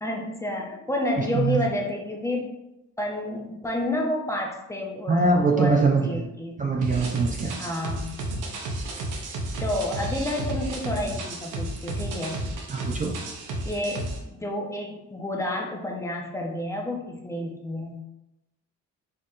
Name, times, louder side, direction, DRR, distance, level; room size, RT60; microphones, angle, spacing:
voice 1, 0.0-2.5 3.0-6.7 7.6-8.2 9.6-12.4 13.6-18.0, left 1 dB, 10° left, 0 dB, 0.8 m, -30 dB
voice 2, 1.2-1.6 5.1-6.2 6.6-7.5 12.7-13.1, right 3 dB, 25° right, 0 dB, 0.6 m, -23 dB
sound 1, 6.8-14.2, right 2 dB, 90° right, 0.8 m, -32 dB
4.4 x 3.4 x 2.5 m, 0.92 s
cardioid pair, 90°, 30 cm